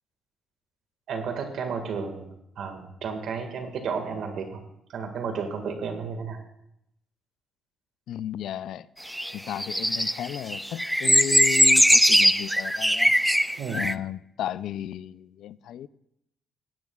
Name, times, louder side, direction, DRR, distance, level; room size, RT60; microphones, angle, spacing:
voice 1, 1.1-2.3 2.6-4.6 4.9-6.4 13.6-13.8, right 5 dB, 70° right, 1.7 m, -32 dB
voice 2, 8.1-8.9 9.3-13.1 13.7-15.9, left 11 dB, 75° left, 0.3 m, -34 dB
sound 1, 9.1-13.9, equal, ahead, 0.4 m, -20 dB
18.5 x 9.1 x 2.3 m
cardioid pair, 90°, 0 cm